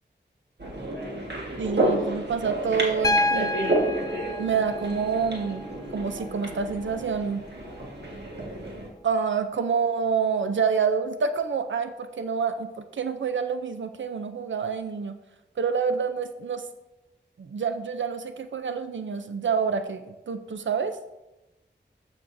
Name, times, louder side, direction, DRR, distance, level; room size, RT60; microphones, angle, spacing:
sound 1, 0.6-8.9, right 1 dB, 65° right, 1.6 m, -30 dB
voice 1, 1.6-3.8 4.4-5.6 5.9-7.4 9.0-15.1 15.6-16.6 17.4-21.0, right 6 dB, 85° right, 8 dB, 0.5 m, -27 dB
Piano, 3.0-7.0 8.6-8.7, left 2 dB, 20° left, 0.4 m, -30 dB
12.5 x 6.1 x 2.6 m, 1.0 s
wide cardioid pair, 70°, 19 cm